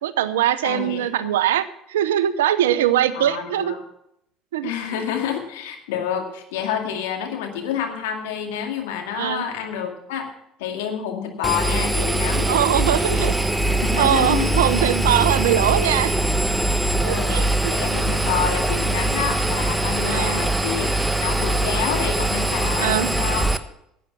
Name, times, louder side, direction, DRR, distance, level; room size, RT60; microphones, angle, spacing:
voice 1, 0.0-3.7 4.5-4.7 9.2-9.4 12.5-13.3 14.0-16.1 17.0-17.7 20.1-20.4 22.8-23.1, right 11 dB, 85° right, 15 dB, 0.7 m, -21 dB
voice 2, 0.6-1.4 3.1-3.8 4.6-10.3 10.6-12.5 13.8-14.6 16.9-17.4 17.7-23.5, left 8 dB, 80° left, 3 dB, 2.2 m, -28 dB
Engine, 11.4-23.6, right 2 dB, 5° right, 1.1 m, -22 dB
12.0 x 8.8 x 7.2 m, 0.77 s
hypercardioid pair, 65°, 0 cm